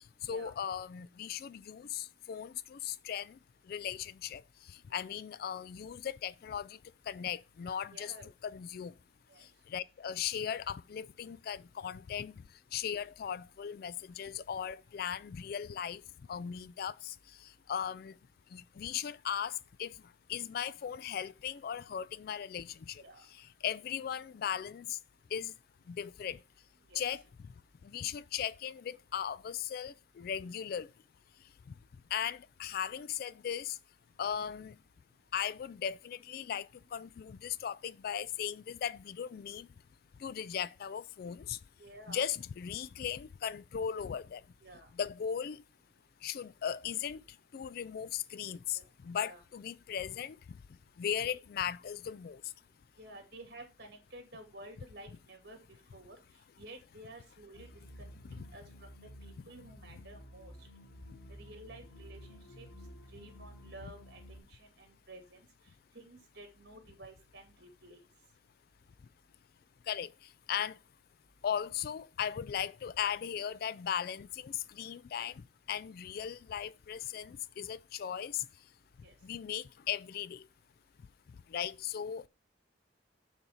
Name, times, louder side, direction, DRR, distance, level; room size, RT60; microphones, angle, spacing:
voice 1, 0.2-3.4 3.7-4.4 4.7-6.8 7.1-8.1 8.4-8.9 9.7-12.3 12.7-16.0 16.3-17.2 17.4-18.2 18.5-19.9 20.3-23.0 23.3-25.0 25.3-25.5 25.9-26.4 26.9-27.2 27.8-30.9 32.1-33.8 34.2-34.8 35.3-39.7 40.2-41.6 42.1-44.4 44.9-45.6 46.2-47.2 47.5-50.4 51.0-52.4 58.3-58.5 69.9-70.1 70.5-70.8 71.4-78.5 79.2-80.4 81.5-82.3, left 8 dB, 50° left, 0.3 m, -37 dB
voice 2, 7.9-8.3 9.3-9.5 23.0-23.3 26.9-27.0 41.8-42.2 44.6-44.9 48.7-48.9 49.2-49.4 53.0-55.6 55.9-56.2 56.6-57.7 58.0-58.1 58.4-58.9 59.2-60.5 61.3-62.7 63.1-65.4 65.9-68.0 79.0-79.1, right 1 dB, 55° right, 2.4 m, -52 dB
sound 1, 57.5-64.4, equal, 65° left, 2.4 m, -52 dB
7.0 x 4.0 x 6.2 m
head